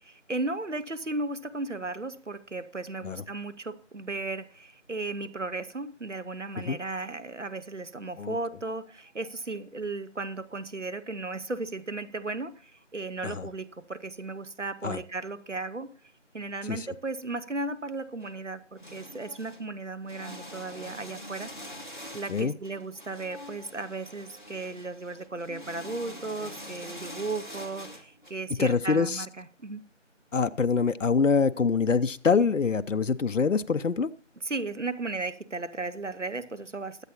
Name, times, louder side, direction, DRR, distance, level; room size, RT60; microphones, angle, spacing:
voice 1, 0.0-15.9 16.3-21.5 22.1-29.8 34.4-37.0, right 3 dB, 70° right, 13 dB, 1.1 m, -35 dB
sound 1, 18.2-18.3 18.7-19.7 20.0-28.3, equal, 40° left, 1.8 m, -44 dB
voice 2, 28.6-29.3 30.3-34.1, left 5 dB, 75° left, 12 dB, 0.7 m, -25 dB
22.0 x 8.2 x 2.8 m, 0.43 s
figure-of-eight pair, 180°, 38 cm